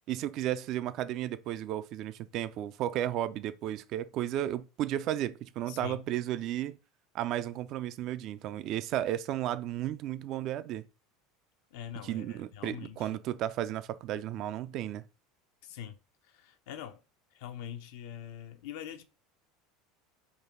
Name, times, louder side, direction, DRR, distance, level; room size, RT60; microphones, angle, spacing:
voice 1, 0.1-6.8 7.1-10.8 12.0-15.0, right 12 dB, 45° right, 0.3 m, -33 dB
voice 2, 5.7-6.1 11.7-13.1 15.6-17.0 17.3-19.0, left 10 dB, 60° left, 0.5 m, -44 dB
3.8 x 2.8 x 4.0 m
figure-of-eight pair, 75°, 0 cm